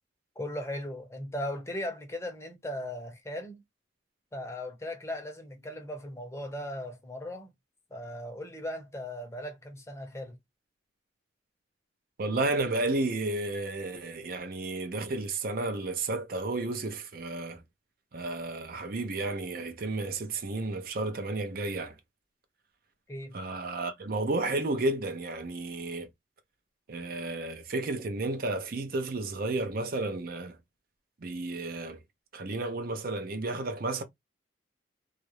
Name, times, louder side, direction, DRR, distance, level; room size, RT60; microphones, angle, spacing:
voice 1, 0.4-3.6 4.3-7.5 7.9-10.4 23.1-23.3, left 1 dB, 15° left, 0.7 m, -38 dB
voice 2, 12.2-17.6 18.1-21.9 23.3-26.1 26.9-30.6 31.2-32.0 32.3-34.0, right 2 dB, 50° right, 0.6 m, -32 dB
2.4 x 2.0 x 2.9 m
head